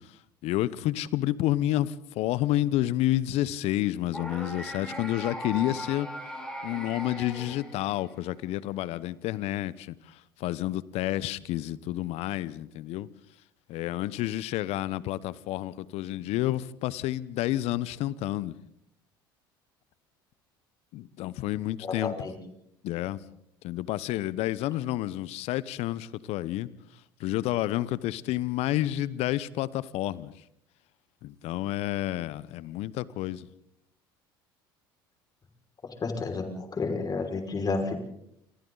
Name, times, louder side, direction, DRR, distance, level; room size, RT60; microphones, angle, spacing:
voice 1, 0.4-6.1 6.6-13.1 13.7-18.5 20.9-22.3 22.8-23.2 23.6-26.7 27.2-30.3 31.2-33.5, left 15 dB, 60° left, 0.9 m, -30 dB
sound 1, 4.1-8.3, equal, 5° left, 7.8 m, -38 dB
voice 2, 21.8-22.3 36.0-36.5 36.7-37.9, left 4 dB, 35° left, 5.5 m, -30 dB
29.0 x 23.5 x 4.0 m
hypercardioid pair, 70°, 12 cm